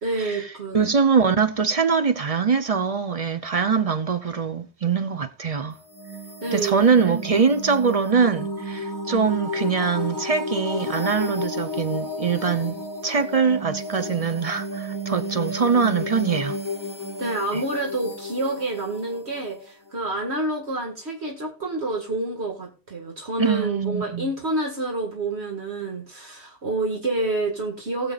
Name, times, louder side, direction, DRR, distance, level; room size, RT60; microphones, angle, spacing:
voice 1, 0.0-0.9 6.4-6.8 17.2-28.1, right 2 dB, 70° right, 2.1 m, -28 dB
voice 2, 0.7-5.8 6.5-12.8 13.0-16.6 17.5-17.6 23.4-24.3, right 5 dB, 40° right, 0.7 m, -23 dB
sound 1, 5.7-20.4, left 1 dB, 20° left, 0.9 m, -32 dB
20.0 x 7.0 x 2.4 m
omnidirectional pair, 1.1 m